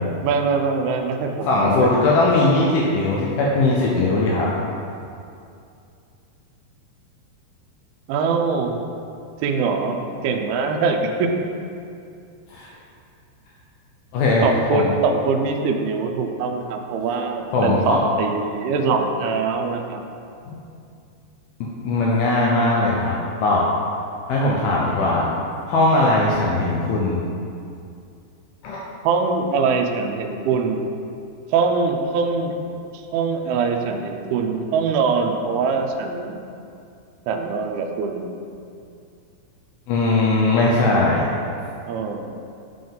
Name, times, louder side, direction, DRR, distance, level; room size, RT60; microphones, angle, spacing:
voice 1, 0.2-2.0 8.1-8.8 9.4-11.3 14.4-20.0 29.0-30.9 31.5-32.5 33.1-36.4 37.3-38.3 41.9-42.3, right 5 dB, 90° right, 4 dB, 2.2 m, -23 dB
voice 2, 1.4-4.5 12.5-12.7 14.1-14.9 17.5-18.0 20.5-20.6 21.6-23.7 24.3-25.3 25.7-27.2 28.6-28.8 39.9-41.2, left 2 dB, 80° left, -4 dB, 2.2 m, -19 dB
7.7 x 3.8 x 5.2 m, 2.5 s
omnidirectional pair, 5.0 m